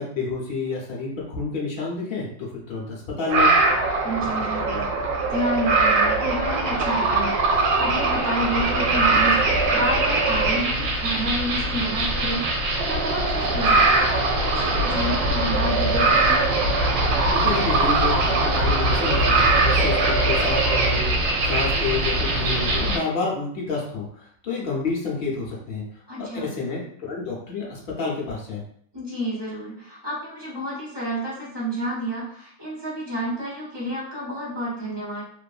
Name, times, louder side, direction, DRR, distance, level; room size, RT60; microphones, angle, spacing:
voice 1, 0.0-3.6 17.3-25.8 26.2-28.6, left 4 dB, 65° left, -4 dB, 0.5 m, -29 dB
sound 1, 3.3-23.0, right 2 dB, 85° right, 1.3 m, -21 dB
voice 2, 4.0-16.5 26.1-26.5 28.9-35.2, equal, 30° right, -7 dB, 0.5 m, -30 dB
3.0 x 2.6 x 2.3 m, 0.64 s
omnidirectional pair, 2.0 m